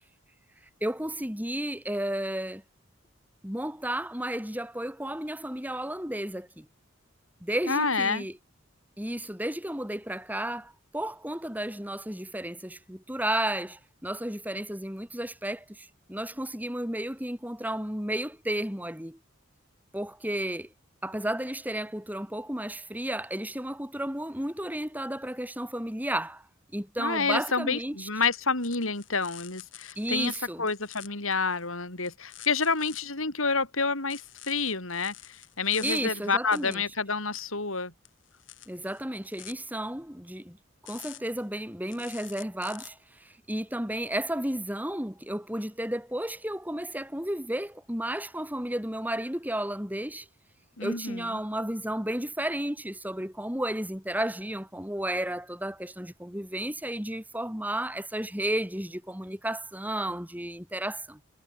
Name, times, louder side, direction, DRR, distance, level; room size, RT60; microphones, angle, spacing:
voice 1, 0.8-2.6 3.4-6.7 7.4-8.3 9.0-19.2 19.9-20.7 21.0-26.5 26.7-28.1 30.0-30.6 35.8-36.8 38.7-40.6 40.8-50.3 50.8-61.2, right 1 dB, 10° right, 3.2 m, -33 dB
voice 2, 7.7-8.3 27.0-30.3 30.6-37.9 50.8-51.3, left 4 dB, 80° left, 5.5 m, -29 dB
sound 1, 28.3-30.4 30.7-31.6 32.0-33.0 34.1-36.0 36.5-36.8 37.3-37.4 38.0-39.5 40.9-41.4 41.9-42.9, left 14 dB, 60° left, 6.3 m, -47 dB
head